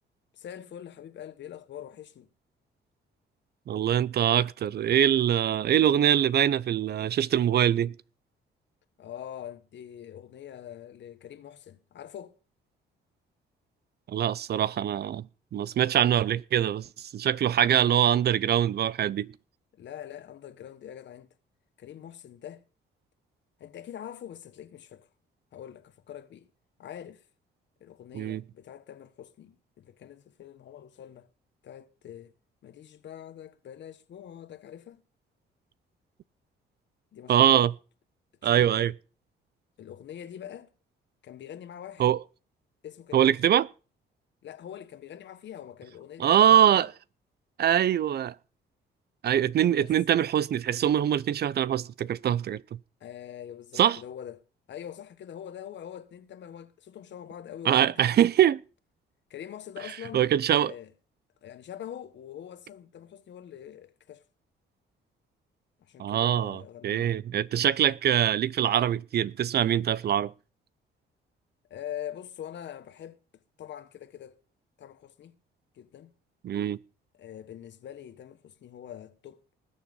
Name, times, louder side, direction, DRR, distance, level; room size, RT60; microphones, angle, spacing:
voice 1, 0.3-2.3 9.0-12.3 19.7-21.3 21.8-22.6 23.6-25.1 25.5-26.5 26.8-27.2 27.8-31.3 31.6-32.3 32.6-35.0 37.1-37.7 38.4-38.9 39.8-40.7 41.2-42.1 42.8-43.3 44.4-46.9 49.6-49.9 53.0-54.4 54.7-58.2 59.3-60.9 61.4-64.2 65.8-67.2 71.7-73.2 73.6-74.4 74.8-75.4 75.7-76.1 77.1-79.4, left 10 dB, 65° left, 1.4 m, -44 dB
voice 2, 3.7-7.9 14.1-15.3 15.5-19.3 28.1-28.4 37.3-37.7 38.4-38.9 42.0-42.2 43.1-43.7 46.2-46.9 47.6-48.3 49.2-52.6 53.8-54.0 57.7-58.6 60.1-60.7 66.0-70.3 76.4-76.8, right 10 dB, 55° right, 0.5 m, -23 dB
20.0 x 7.3 x 5.4 m
cardioid pair, 90°, 20 cm